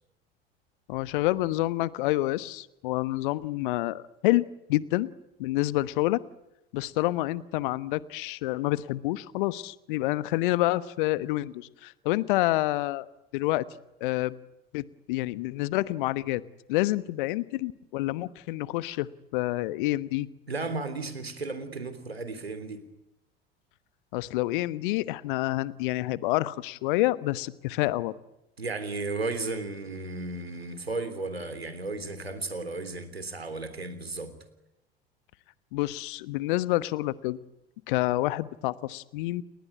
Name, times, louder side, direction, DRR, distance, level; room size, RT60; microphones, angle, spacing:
voice 1, 0.9-5.1 5.4-6.2 6.7-13.1 13.3-13.6 14.0-14.3 14.7-16.4 16.7-20.3 24.1-28.1 35.7-37.4 37.9-39.4, left 18 dB, 55° left, 17 dB, 1.2 m, -28 dB
voice 2, 20.5-22.8 28.6-34.4, right 3 dB, 85° right, 11 dB, 3.3 m, -34 dB
30.0 x 20.0 x 9.7 m, 0.94 s
figure-of-eight pair, 70°, 30 cm